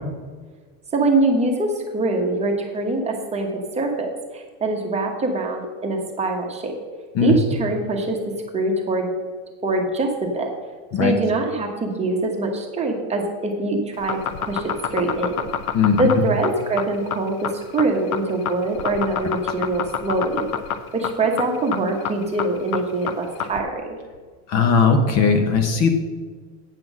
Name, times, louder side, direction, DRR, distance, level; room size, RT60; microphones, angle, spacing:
voice 1, 0.9-6.7 7.2-8.2 8.5-9.1 9.6-10.5 11.0-14.2 14.5-15.5 16.0-20.5 20.9-23.9, right 2 dB, 15° right, 1 dB, 1.2 m, -23 dB
sound 1, 13.9-23.6, left 9 dB, 80° left, 0.9 m, -27 dB
voice 2, 24.5-25.9, left 5 dB, 40° left, 6 dB, 0.9 m, -18 dB
9.1 x 6.0 x 6.2 m, 1.4 s
supercardioid pair, 150°, 42 cm